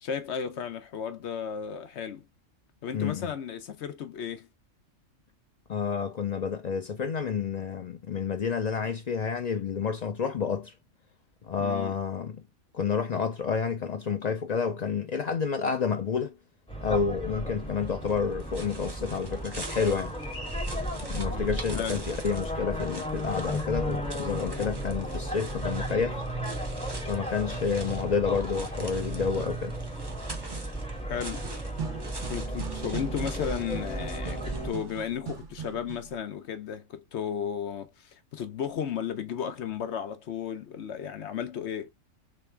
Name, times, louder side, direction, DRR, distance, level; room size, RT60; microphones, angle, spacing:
voice 1, 0.0-2.3 2.8-4.5 11.6-12.0 21.3-22.0 31.0-31.5 32.3-41.9, left 8 dB, 65° left, 0.9 m, -34 dB
voice 2, 2.9-3.3 5.7-10.7 11.4-12.4 12.7-16.4 16.8-20.2 21.0-26.2 27.1-29.8, left 6 dB, 80° left, 0.3 m, -29 dB
sound 1, 16.7-34.7, right 1 dB, 5° left, 2.3 m, -34 dB
sound 2, 17.9-35.1, right 2 dB, 25° right, 0.7 m, -45 dB
sound 3, 30.1-36.2, right 7 dB, 70° right, 1.4 m, -41 dB
3.4 x 3.2 x 3.2 m
omnidirectional pair, 1.3 m